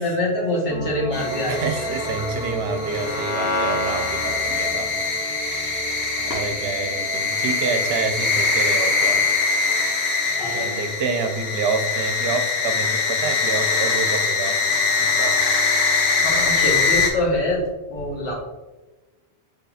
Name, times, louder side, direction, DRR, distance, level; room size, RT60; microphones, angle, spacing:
voice 1, 0.0-1.9 2.2-2.3 10.4-10.7 16.2-17.6 17.9-18.3, left 1 dB, 60° left, -3 dB, 1.3 m, -25 dB
sound 1, 0.7-16.4 16.8-16.9, right 1 dB, 30° left, 0.8 m, -36 dB
sound 2, 1.1-17.1, left 4 dB, 80° left, 1.2 m, -23 dB
voice 2, 1.5-9.2 10.5-14.6 15.0-15.3, right 4 dB, 75° right, 6 dB, 0.8 m, -28 dB
5.4 x 3.7 x 2.3 m, 1.1 s
omnidirectional pair, 1.1 m